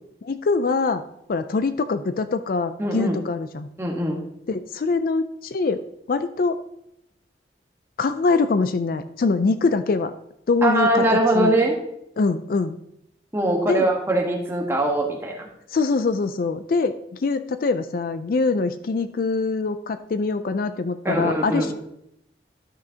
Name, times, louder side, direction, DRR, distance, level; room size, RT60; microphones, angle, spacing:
voice 1, 0.2-1.0 1.3-3.7 4.5-5.8 6.1-6.6 8.0-10.1 10.5-11.0 11.3-11.5 12.2-12.8 13.7-13.9 15.7-16.9 17.2-21.7, left 4 dB, 50° left, 11 dB, 0.4 m, -23 dB
voice 2, 2.8-3.2 3.8-4.2 10.6-11.8 13.3-15.5 21.0-21.7, right 1 dB, 15° right, 0 dB, 1.3 m, -22 dB
12.0 x 6.3 x 2.8 m, 0.79 s
head